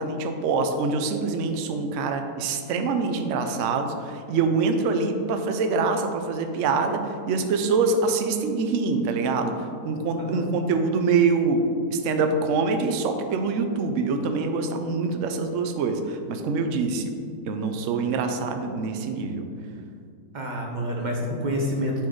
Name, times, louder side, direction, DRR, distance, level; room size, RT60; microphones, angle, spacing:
voice 1, 0.0-11.6 11.9-17.1 17.5-19.4, right 4 dB, 65° right, 6 dB, 0.8 m, -25 dB
voice 2, 10.2-10.5 20.3-22.1, equal, 35° right, -1 dB, 0.9 m, -28 dB
9.2 x 4.4 x 3.8 m, 2.3 s
omnidirectional pair, 1.8 m